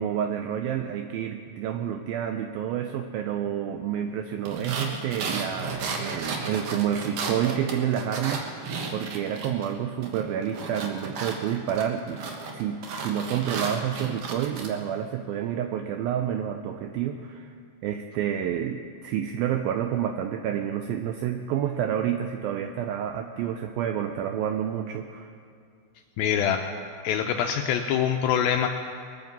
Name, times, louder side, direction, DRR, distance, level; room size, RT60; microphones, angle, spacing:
voice 1, 0.0-17.6 17.8-25.3, right 9 dB, 85° right, 7 dB, 2.1 m, -29 dB
sound 1, 4.5-9.7 10.0-14.7, right 4 dB, 60° right, 2.3 m, -34 dB
voice 2, 26.2-26.6 27.0-28.7, left 9 dB, 80° left, 4 dB, 2.1 m, -24 dB
21.0 x 9.3 x 7.4 m, 2.4 s
omnidirectional pair, 4.8 m